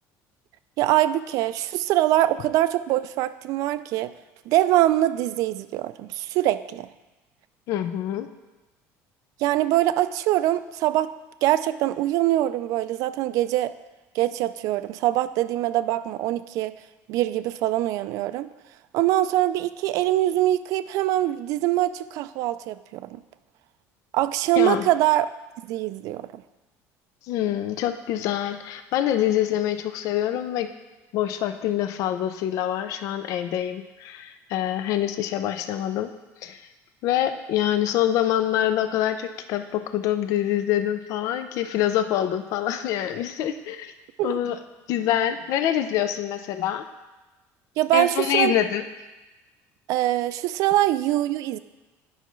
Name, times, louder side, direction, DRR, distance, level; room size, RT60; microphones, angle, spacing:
voice 1, 0.8-4.1 4.5-6.9 9.4-11.1 11.4-13.7 14.1-16.7 17.1-18.5 18.9-23.2 24.1-25.3 25.6-26.4 44.2-44.4 47.8-48.5 49.9-51.6, right 14 dB, 65° right, 13 dB, 0.3 m, -23 dB
voice 2, 7.7-8.3 24.6-24.9 27.2-30.7 31.1-36.1 36.4-36.7 37.0-43.9 44.2-44.6 44.9-46.8 47.9-48.8, left 11 dB, 60° left, 9 dB, 0.4 m, -25 dB
10.0 x 5.6 x 3.1 m, 1.1 s
cardioid pair, 140°, 6 cm